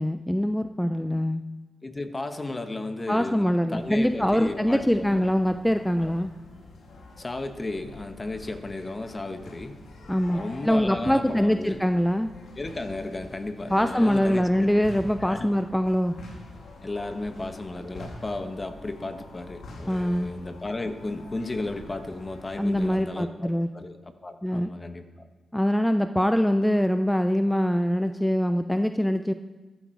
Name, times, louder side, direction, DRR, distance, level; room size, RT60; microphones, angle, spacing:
voice 1, 0.0-1.4 3.1-6.3 10.1-12.3 13.7-16.1 19.9-20.3 22.6-23.7 24.4-24.7 25.5-29.3, equal, 5° left, 9 dB, 0.7 m, -23 dB
voice 2, 1.8-5.2 6.0-6.1 7.2-9.8 10.3-11.8 12.6-14.7 15.3-15.5 16.8-25.0, left 2 dB, 30° left, 7 dB, 1.5 m, -34 dB
sound 1, 3.7-23.0, left 2 dB, 70° left, 2.5 m, -46 dB
14.0 x 12.0 x 4.8 m, 1.2 s
supercardioid pair, 50°, 0 cm